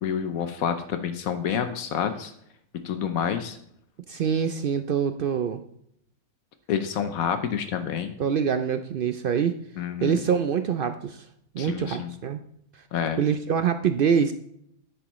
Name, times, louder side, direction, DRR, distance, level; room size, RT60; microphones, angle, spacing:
voice 1, 0.0-2.3 2.8-3.6 6.7-8.1 9.8-10.2 11.6-12.1 12.9-13.2, left 8 dB, 75° left, 9 dB, 1.2 m, -28 dB
voice 2, 4.1-5.6 8.2-9.6 10.0-11.3 11.5-12.4 13.2-14.3, right 7 dB, 75° right, 9 dB, 0.5 m, -25 dB
9.8 x 8.7 x 3.1 m, 0.71 s
omnidirectional pair, 1.5 m